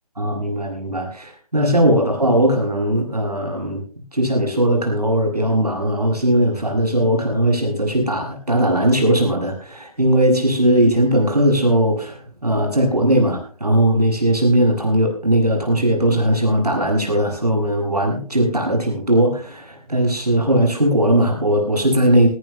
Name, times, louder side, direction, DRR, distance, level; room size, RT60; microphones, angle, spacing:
voice 1, 0.2-3.8 4.1-22.3, right 1 dB, 85° right, 2 dB, 7.3 m, -18 dB
20.0 x 19.0 x 2.2 m, 0.41 s
figure-of-eight pair, 140°, 20 cm